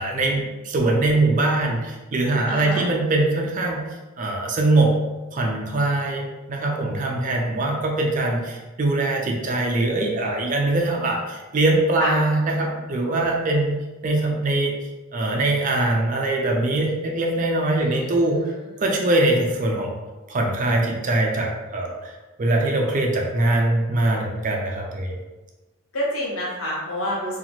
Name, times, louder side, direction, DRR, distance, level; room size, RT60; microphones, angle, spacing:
voice 1, 0.0-3.8 4.2-4.9 5.3-13.8 14.0-14.7 15.1-18.5 18.8-19.9 20.3-22.1 22.4-25.2, right 2 dB, 35° right, 0 dB, 0.4 m, -22 dB
voice 2, 2.5-2.9 12.0-12.1 17.8-18.6 25.9-27.4, equal, 70° left, -5 dB, 1.0 m, -28 dB
2.8 x 2.4 x 2.6 m, 1.2 s
head